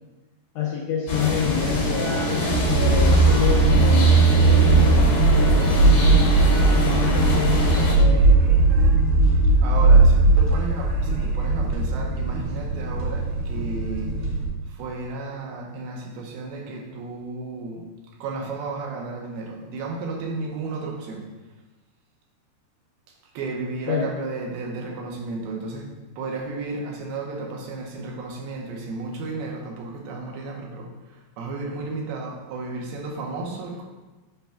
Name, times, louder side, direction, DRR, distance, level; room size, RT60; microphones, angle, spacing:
voice 1, 0.5-2.2 2.7-8.6 23.9-24.2, left 7 dB, 80° left, -3 dB, 1.8 m, -28 dB
sound 1, 1.1-7.9, left 2 dB, 60° left, 1.3 m, -24 dB
sound 2, 2.5-14.5, right 3 dB, 75° right, 2.9 m, -18 dB
voice 2, 9.2-14.3 14.7-17.9 18.2-21.3 23.3-33.8, right 3 dB, 90° right, 0 dB, 2.8 m, -33 dB
7.9 x 5.6 x 2.3 m, 1.2 s
omnidirectional pair, 4.3 m